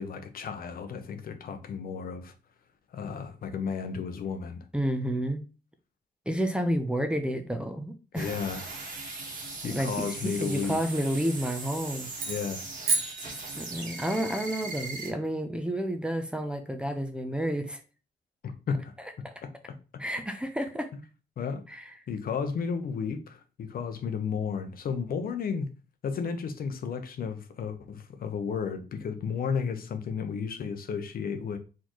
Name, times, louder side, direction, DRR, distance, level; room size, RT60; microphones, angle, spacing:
voice 1, 0.0-2.3 2.9-4.7 8.1-8.7 9.6-10.8 12.3-12.6 18.7-18.9 21.4-21.8 22.1-25.7 26.0-31.6, left 6 dB, 60° left, 0.7 m, -33 dB
voice 2, 4.7-5.4 6.3-8.3 9.7-12.1 13.6-17.8 19.2-19.3 20.0-20.9 21.7-21.8, equal, 5° right, 0.6 m, -30 dB
sound 1, 8.2-15.1, right 3 dB, 50° right, 1.7 m, -39 dB
sound 2, 12.1-14.1, right 4 dB, 70° right, 1.0 m, -32 dB
4.3 x 3.7 x 3.0 m
cardioid pair, 120°, 17 cm